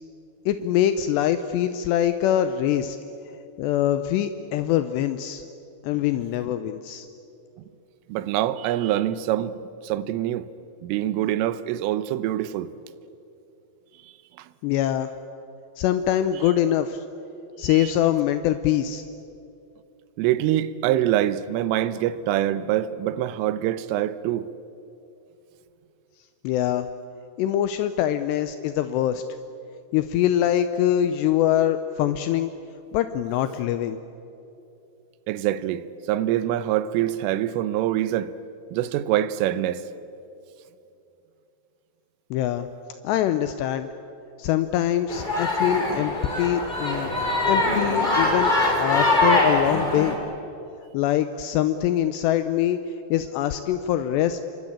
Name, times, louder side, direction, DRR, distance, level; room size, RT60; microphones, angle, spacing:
voice 1, 0.5-3.0 3.6-5.4 5.8-7.1 14.6-15.1 15.8-17.0 17.6-19.0 26.4-26.9 27.4-29.2 29.9-32.5 32.9-34.0 42.3-42.7 43.0-43.9 44.4-46.1 46.4-47.1 47.5-48.5 48.8-50.2 50.9-52.8 53.1-54.4, left 11 dB, 85° left, 2.4 m, -23 dB
voice 2, 8.1-10.5 10.8-12.7 14.4-14.5 17.6-17.9 20.2-24.5 35.3-38.3 38.7-39.8, right 12 dB, 80° right, 3.3 m, -25 dB
sound 1, 45.1-50.1, left 2 dB, 10° left, 3.6 m, -22 dB
28.0 x 23.0 x 8.6 m
omnidirectional pair, 5.9 m